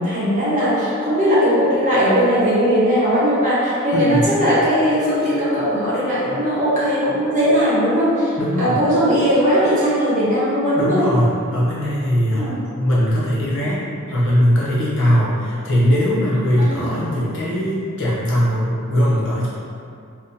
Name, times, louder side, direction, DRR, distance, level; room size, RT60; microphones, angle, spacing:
voice 1, 0.0-11.1 12.3-12.6 16.6-17.0, equal, 35° right, -8 dB, 0.9 m, -18 dB
voice 2, 3.9-4.3 8.4-8.8 10.8-19.5, equal, 60° left, -7 dB, 0.9 m, -20 dB
2.8 x 2.1 x 4.0 m, 2.5 s
head